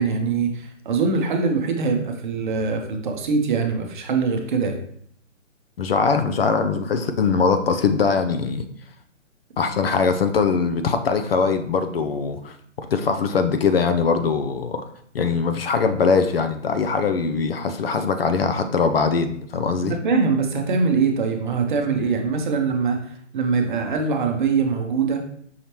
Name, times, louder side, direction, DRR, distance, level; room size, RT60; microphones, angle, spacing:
voice 1, 0.0-4.8 19.8-23.1 23.3-25.2, right 5 dB, 40° right, 3 dB, 0.7 m, -23 dB
voice 2, 5.8-8.6 9.6-14.8 15.1-20.0, left 5 dB, 50° left, 8 dB, 0.5 m, -22 dB
5.6 x 3.1 x 2.9 m, 0.63 s
hypercardioid pair, 150°, 38 cm